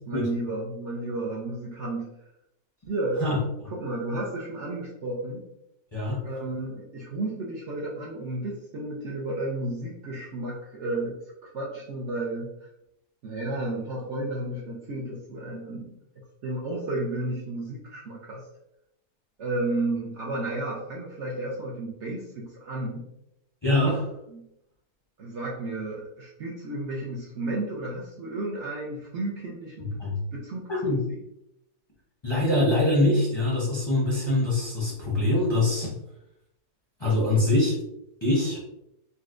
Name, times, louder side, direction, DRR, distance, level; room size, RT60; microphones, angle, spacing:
voice 1, 0.1-2.1 2.9-3.2 3.6-5.5 6.2-11.1 11.4-12.7 13.2-16.0 16.4-18.4 19.4-23.0 24.3-24.4 25.2-30.0 30.3-31.2, right 2 dB, 60° right, -4 dB, 0.8 m, -32 dB
voice 2, 23.6-24.0 30.0-30.2 30.7-31.0 32.2-35.9 37.0-37.8 38.2-38.6, left 2 dB, 25° left, -6 dB, 0.6 m, -23 dB
4.0 x 2.2 x 2.4 m, 0.81 s
omnidirectional pair, 1.7 m